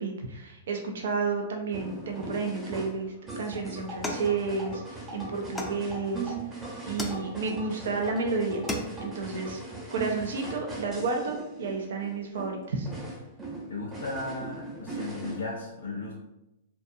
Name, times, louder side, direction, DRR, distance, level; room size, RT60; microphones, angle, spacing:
voice 1, 0.0-8.6 9.0-9.6 9.9-12.9, right 4 dB, 75° right, 2 dB, 0.4 m, -31 dB
sound 1, 1.7-15.3, right 3 dB, 15° right, 0.8 m, -39 dB
sound 2, 4.0-5.0 5.6-6.3 7.0-7.7 8.2-8.3 8.5-9.2, left 1 dB, 10° left, 0.4 m, -36 dB
voice 2, 13.7-16.1, left 3 dB, 80° left, -2 dB, 0.5 m, -35 dB
2.6 x 2.3 x 2.6 m, 0.90 s
hypercardioid pair, 125°, 0 cm